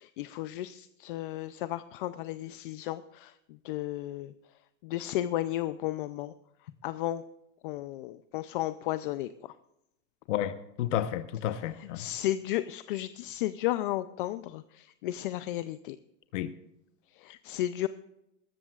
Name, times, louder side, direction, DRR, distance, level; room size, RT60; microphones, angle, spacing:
voice 1, 0.0-6.3 6.6-7.2 7.6-9.5 11.7-16.0 17.1-17.9, left 14 dB, 45° left, 13 dB, 0.5 m, -34 dB
voice 2, 10.3-12.1 16.3-16.5 17.3-17.4, left 11 dB, 80° left, 10 dB, 1.0 m, -31 dB
20.5 x 13.5 x 2.4 m, 0.85 s
supercardioid pair, 175°, 36 cm